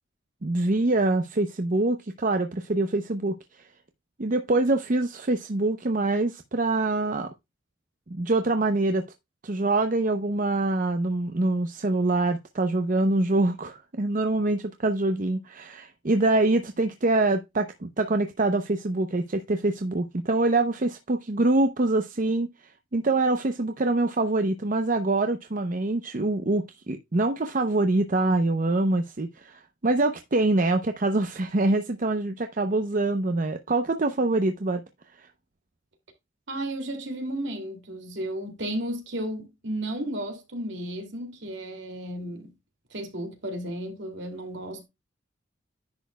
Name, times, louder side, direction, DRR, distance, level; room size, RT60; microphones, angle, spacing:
voice 1, 0.4-3.6 4.2-7.3 8.1-9.1 9.4-34.8 35.2-35.3, right 2 dB, 45° right, 0.7 m, -25 dB
voice 2, 36.5-42.5 42.9-44.8, right 1 dB, 70° right, 2.5 m, -33 dB
10.5 x 7.1 x 2.2 m
head